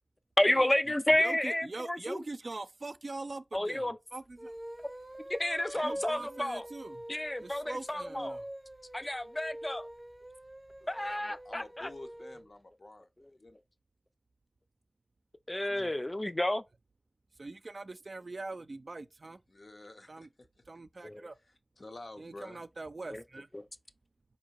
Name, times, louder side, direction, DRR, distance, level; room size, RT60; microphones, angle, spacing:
voice 1, 0.4-2.2 3.5-4.0 5.4-6.7 7.1-8.4 8.9-9.9 10.9-11.9 15.5-16.6 21.0-21.3 23.1-23.2 23.5-23.7, left 1 dB, 30° left, 0.3 m, -30 dB
voice 2, 1.1-4.5 5.8-7.0 7.4-8.5 15.7-16.0 17.4-19.4 20.1-20.3 20.7-21.4 22.2-23.5, right 2 dB, 75° right, 0.3 m, -43 dB
sound 1, 4.3-12.5, right 1 dB, 30° right, 0.6 m, -45 dB
voice 3, 11.0-13.1 13.4-13.6 19.5-20.3 21.5-22.6, left 2 dB, 75° left, 0.6 m, -49 dB
4.4 x 2.6 x 2.9 m
wide cardioid pair, 60°, 0 cm